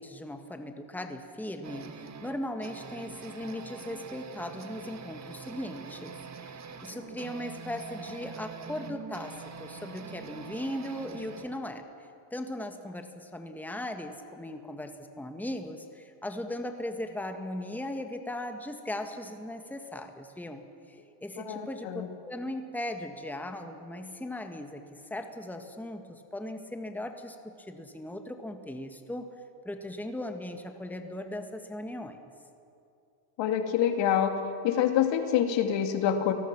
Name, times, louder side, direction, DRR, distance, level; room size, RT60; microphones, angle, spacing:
voice 1, 0.0-6.2 6.4-11.8 12.3-29.3 29.7-32.2, left 1 dB, 5° left, 6 dB, 1.7 m, -38 dB
sound 1, 1.6-11.7, right 6 dB, 35° right, 1.9 m, -44 dB
voice 2, 21.4-22.1 33.4-34.4 34.6-36.3, left 9 dB, 65° left, 6 dB, 2.5 m, -26 dB
30.0 x 19.0 x 6.1 m, 2.6 s
supercardioid pair, 100°, 48 cm